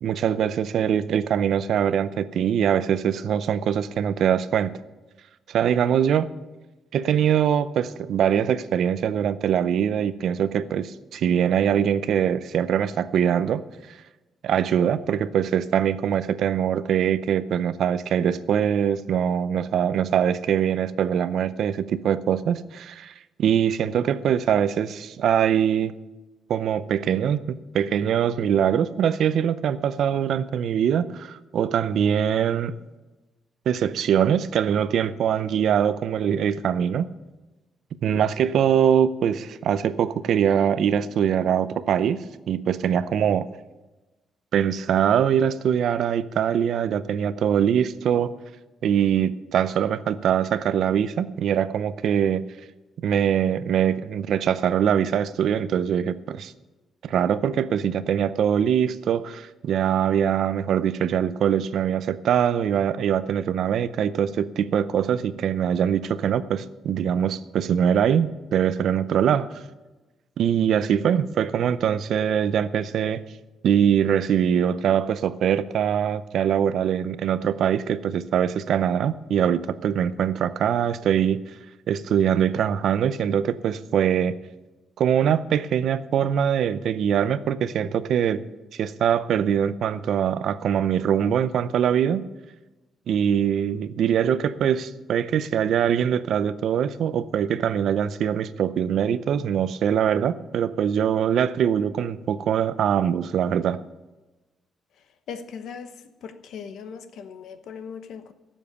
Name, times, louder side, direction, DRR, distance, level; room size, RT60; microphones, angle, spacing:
voice 1, 0.0-4.7 5.5-6.3 6.9-13.6 14.4-23.1 23.4-25.9 26.5-27.4 27.7-32.7 33.7-37.1 38.0-43.5 44.5-48.3 48.8-52.4 53.0-56.5 57.0-69.6 70.4-73.2 73.6-81.4 81.9-84.3 85.0-88.4 88.7-92.2 93.1-103.8, right 9 dB, 60° right, 14 dB, 0.6 m, -23 dB
voice 2, 105.3-105.9 106.2-108.3, left 6 dB, 65° left, 9 dB, 1.1 m, -38 dB
17.0 x 7.3 x 6.9 m, 1.1 s
cardioid pair, 175°, 0 cm